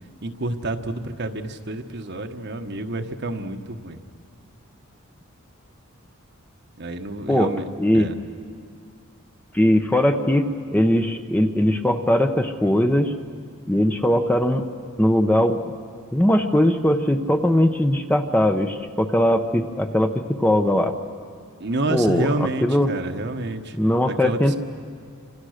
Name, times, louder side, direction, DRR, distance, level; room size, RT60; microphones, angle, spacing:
voice 1, 0.2-4.0 6.8-7.6 7.9-8.1 21.6-23.8 24.1-24.4, right 2 dB, 50° right, 6 dB, 1.3 m, -28 dB
voice 2, 7.8-8.1 9.5-13.1 13.7-14.6 15.0-15.7 16.1-20.1 20.4-20.9 21.9-22.9 23.7-24.6, left 1 dB, 5° left, 6 dB, 0.8 m, -20 dB
29.0 x 26.5 x 6.5 m, 2.2 s
head